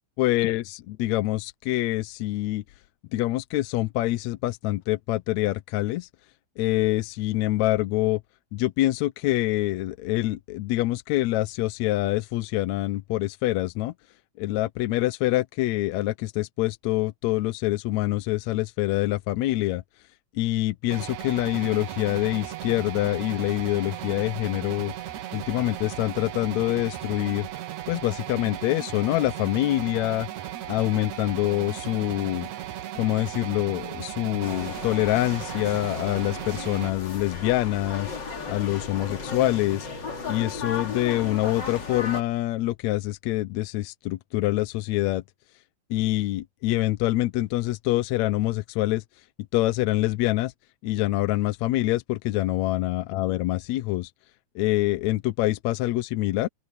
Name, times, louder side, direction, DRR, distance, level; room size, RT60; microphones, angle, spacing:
voice 1, 0.2-2.6 3.1-6.1 6.6-8.2 8.5-13.9 14.4-19.8 20.4-24.9 25.3-27.5 27.9-30.3 30.7-32.5 32.9-38.1 38.5-39.9 40.3-45.2 45.9-49.0 49.5-50.5 50.8-54.1 54.6-56.5, left 17 dB, 75° left, 1.9 m, -25 dB
sound 1, 20.9-36.9, right 12 dB, 75° right, 2.6 m, -36 dB
sound 2, 34.4-42.2, left 4 dB, 35° left, 3.1 m, -35 dB
open air
omnidirectional pair, 3.4 m